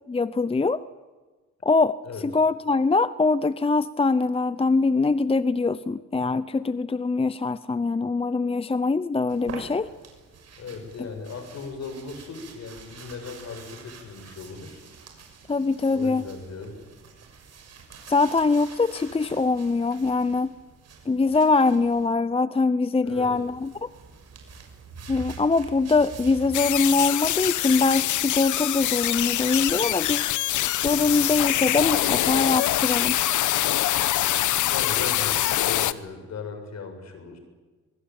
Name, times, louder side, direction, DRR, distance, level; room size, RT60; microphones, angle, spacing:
voice 1, 0.1-0.8 1.6-2.0 2.2-9.9 15.5-16.3 18.1-20.5 21.1-23.9 25.1-30.3 30.8-33.2, left 3 dB, 20° left, 15 dB, 0.7 m, -23 dB
sound 1, 9.3-22.1 23.1-26.6, right 5 dB, 55° right, 6.4 m, -46 dB
voice 2, 10.6-14.8 15.9-16.8 23.0-23.3 34.7-37.4, left 4 dB, 60° left, 7 dB, 6.8 m, -37 dB
sound 2, 26.5-35.9, left 13 dB, 75° left, 1.1 m, -24 dB
24.0 x 23.0 x 9.0 m, 1.3 s
cardioid pair, 90°, 30 cm